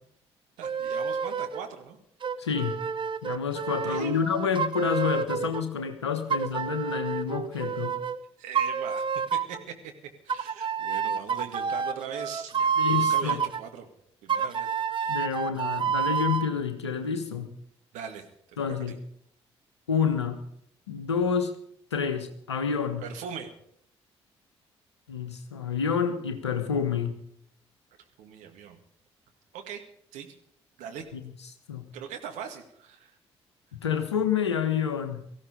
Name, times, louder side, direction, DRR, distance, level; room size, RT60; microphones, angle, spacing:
sound 1, 0.6-1.6 2.2-5.6 6.3-8.2 8.5-9.6 10.3-13.6 14.3-16.5, right 6 dB, 35° right, 1.0 m, -29 dB
voice 1, 0.6-2.0 3.8-4.2 7.5-7.7 8.4-9.1 9.3-9.9 10.2-13.9 14.2-15.2 17.9-18.3 18.6-18.8 23.0-23.5 28.2-28.8 29.5-29.8 30.1-30.3 30.8-31.1 31.9-33.1, right 8 dB, 60° right, 4 dB, 2.0 m, -40 dB
voice 2, 2.4-2.8 3.2-8.0 12.8-13.4 15.1-17.5 18.6-18.9 19.9-20.4 20.9-21.5 21.9-23.0 25.1-27.2 31.1-31.2 31.7-31.9 33.8-35.2, left 7 dB, 80° left, 8 dB, 1.4 m, -28 dB
18.5 x 15.0 x 5.2 m, 0.68 s
figure-of-eight pair, 45°, 14 cm